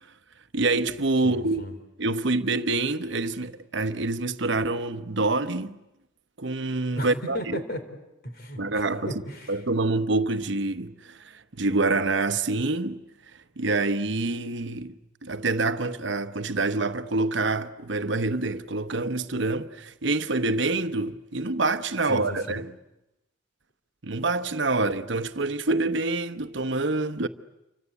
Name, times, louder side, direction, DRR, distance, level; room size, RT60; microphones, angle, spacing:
voice 1, 0.5-5.7 6.4-7.6 8.6-9.1 9.5-13.0 13.6-14.9 15.2-22.7 24.0-27.3, right 3 dB, 60° right, 1.0 m, -26 dB
voice 2, 1.2-1.7 7.0-7.8 8.2-9.6 22.1-22.6, left 1 dB, 50° left, 3.8 m, -35 dB
28.5 x 25.0 x 8.3 m
head